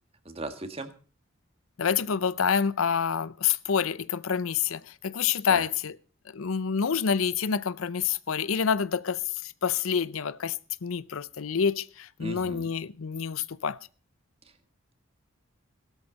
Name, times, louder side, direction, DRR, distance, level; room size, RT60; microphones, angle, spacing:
voice 1, 0.2-0.9 5.5-5.7 12.2-12.7, right 2 dB, 30° right, 1.7 m, -37 dB
voice 2, 1.8-5.9 6.3-10.6 10.8-13.8, left 7 dB, 85° left, 0.6 m, -27 dB
17.0 x 13.0 x 4.1 m
head